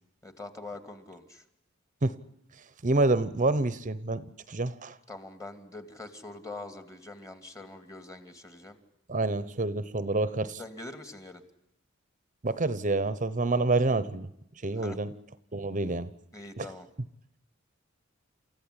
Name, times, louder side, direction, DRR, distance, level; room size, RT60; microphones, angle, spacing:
voice 1, 0.2-1.4 5.1-8.8 10.6-11.4 14.8-15.0 16.3-16.9, left 2 dB, 15° left, 8 dB, 2.4 m, -44 dB
voice 2, 2.6-5.0 9.1-10.6 12.4-14.3 14.6-15.1 15.5-16.1 16.6-16.7, right 2 dB, 40° right, 15 dB, 1.0 m, -28 dB
29.0 x 15.0 x 10.0 m, 0.83 s
head